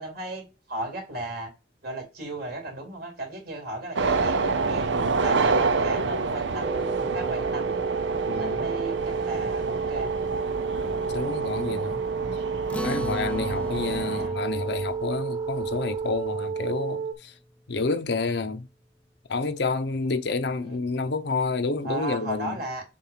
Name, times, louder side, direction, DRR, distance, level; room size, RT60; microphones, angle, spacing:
voice 1, 0.0-1.5 1.8-4.9 5.2-7.7 8.4-10.1 11.4-11.6 14.1-14.3 20.6-20.7 21.8-22.8, right 1 dB, 55° right, 2.9 m, -36 dB
sound 1, 4.0-14.3, right 4 dB, 80° right, 0.7 m, -28 dB
sound 2, 6.6-17.1, right 5 dB, 25° right, 0.8 m, -31 dB
voice 2, 8.3-8.7 10.8-12.0 12.8-17.3 17.7-18.7 19.3-22.6, left 3 dB, 65° left, 0.7 m, -29 dB
Acoustic guitar, 12.7-17.4, left 1 dB, 5° left, 0.4 m, -39 dB
7.3 x 2.5 x 5.7 m
head